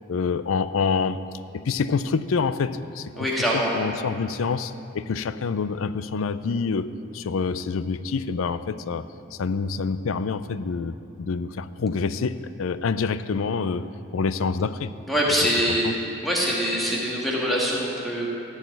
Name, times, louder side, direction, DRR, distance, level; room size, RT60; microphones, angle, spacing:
voice 1, 0.1-1.2 1.5-3.3 3.5-9.1 9.3-13.8 14.1-14.9 15.4-15.5 15.8-15.9, left 5 dB, 85° left, 14 dB, 0.4 m, -27 dB
voice 2, 3.2-3.7 15.1-15.9 16.2-18.3, equal, ahead, -5 dB, 1.8 m, -24 dB
14.5 x 4.9 x 9.1 m, 2.8 s
head